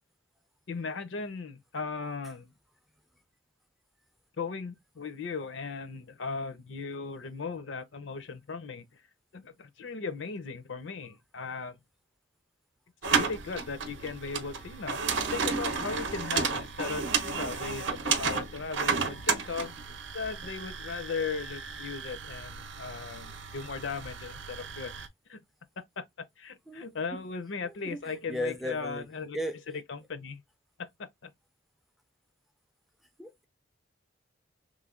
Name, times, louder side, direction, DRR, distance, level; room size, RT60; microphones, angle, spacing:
voice 1, 0.7-2.5 4.4-9.0 9.3-11.8 13.0-24.9 25.3-25.4 26.0-26.1 26.4-29.4 29.7-30.4 31.0-31.3, left 4 dB, 70° left, 0.6 m, -37 dB
sound 1, 13.0-25.1, right 5 dB, 65° right, 0.6 m, -33 dB
voice 2, 27.6-29.1 29.3-29.6 33.2-33.5, left 1 dB, ahead, 0.3 m, -36 dB
3.1 x 2.1 x 3.6 m
head